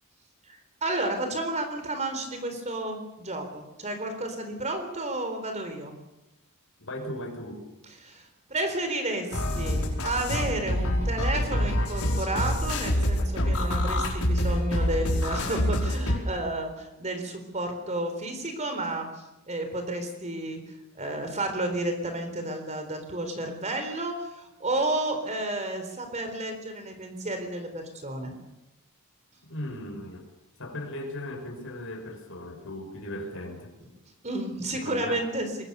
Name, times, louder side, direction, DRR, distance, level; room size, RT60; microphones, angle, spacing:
voice 1, 0.5-5.9 8.0-19.1 19.5-20.6 20.9-28.3 33.8-33.9 34.2-35.6, right 1 dB, 30° right, 6 dB, 4.1 m, -31 dB
voice 2, 6.8-7.6 29.4-30.3 30.6-33.7 34.7-35.2, left 1 dB, 60° left, 4 dB, 5.7 m, -37 dB
sound 1, 9.3-16.2, equal, 80° left, 5.3 m, -26 dB
24.0 x 21.5 x 6.9 m, 0.95 s
head